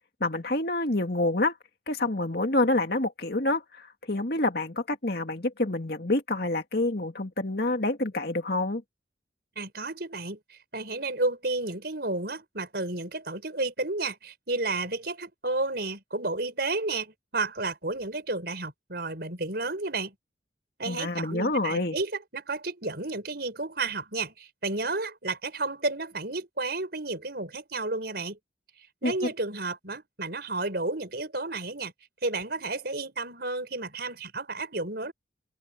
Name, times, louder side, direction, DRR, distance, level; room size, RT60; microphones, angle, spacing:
voice 1, 0.2-1.5 1.9-8.8 20.9-22.0 29.0-29.3, left 2 dB, 55° left, 2.4 m, -27 dB
voice 2, 9.6-10.4 10.7-20.1 20.8-28.4 29.0-31.9 32.2-35.1, right 3 dB, 55° right, 6.1 m, -32 dB
open air
head